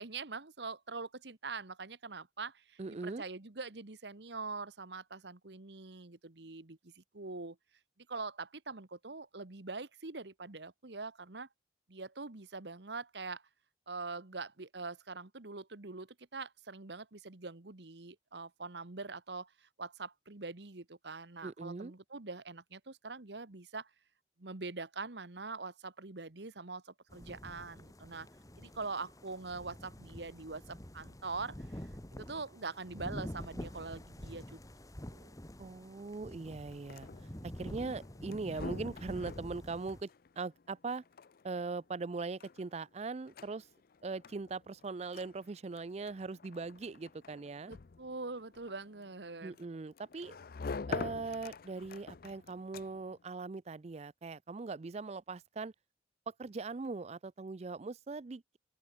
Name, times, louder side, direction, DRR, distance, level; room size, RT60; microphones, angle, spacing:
voice 1, 0.0-7.6 8.1-11.5 11.9-13.4 13.9-23.9 24.4-28.3 28.6-34.6 35.1-35.3 47.7-49.5, right 4 dB, 70° right, 1.4 m, -44 dB
voice 2, 2.8-3.2 21.4-21.9 35.6-37.1 37.4-40.1 40.4-41.0 41.4-43.7 44.0-47.7 49.4-50.4 50.9-55.7 56.3-58.6, right 3 dB, 35° right, 0.4 m, -40 dB
sound 1, 27.1-40.0, equal, 20° left, 1.8 m, -47 dB
sound 2, 36.7-53.2, left 4 dB, 55° left, 0.5 m, -47 dB
open air
head